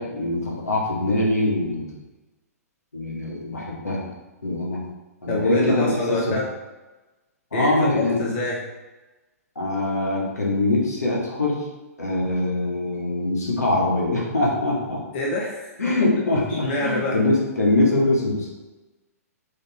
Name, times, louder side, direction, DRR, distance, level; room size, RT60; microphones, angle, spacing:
voice 1, 0.0-2.0 2.9-4.1 4.4-4.8 5.2-6.4 7.5-8.3 9.6-11.6 12.0-15.0 15.8-18.5, left 2 dB, 75° left, -3 dB, 2.2 m, -23 dB
voice 2, 5.3-6.4 7.5-8.7 15.1-15.9 16.6-17.2, left 1 dB, 45° left, -3 dB, 1.5 m, -26 dB
7.8 x 4.1 x 3.7 m, 1.1 s
figure-of-eight pair, 115°, 9 cm